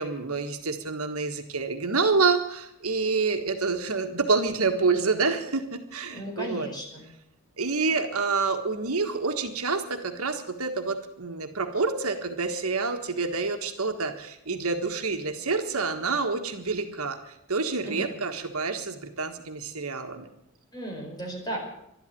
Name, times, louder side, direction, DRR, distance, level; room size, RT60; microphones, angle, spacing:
voice 1, 0.0-6.7 7.6-20.3, right 4 dB, 70° right, 6 dB, 1.5 m, -28 dB
voice 2, 6.1-7.0 17.8-18.1 20.7-21.6, right 1 dB, 20° left, 0 dB, 4.8 m, -35 dB
12.5 x 12.0 x 9.2 m, 0.79 s
head